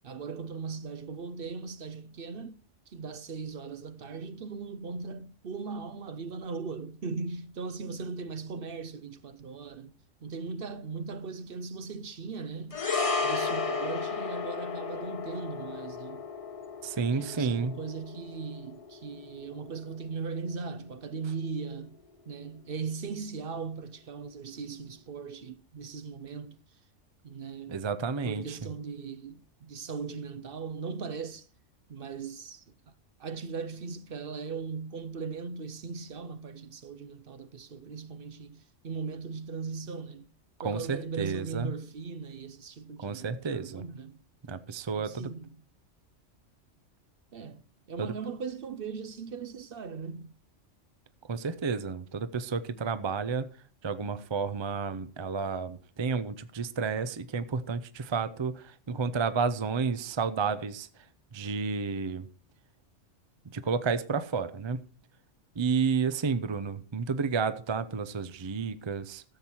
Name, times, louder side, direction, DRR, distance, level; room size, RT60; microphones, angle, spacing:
voice 1, 0.0-2.6 2.9-9.9 10.2-12.8 13.2-16.3 17.1-22.0 22.3-26.6 27.2-27.8 28.2-31.5 31.9-32.9 33.2-40.3 40.6-44.2 44.9-45.6 47.3-47.6 47.9-50.3, right 5 dB, 55° right, 0.8 m, -39 dB
sound 1, 12.7-21.2 21.4-21.6, left 4 dB, 30° left, 1.1 m, -34 dB
voice 2, 16.8-17.8 27.7-28.6 40.6-41.7 43.0-43.8 44.5-45.3 48.0-48.1 51.3-53.5 53.8-60.9 61.3-62.3 63.5-64.8 65.6-69.2, right 5 dB, 30° right, 0.5 m, -31 dB
13.5 x 7.3 x 4.4 m
omnidirectional pair, 1.3 m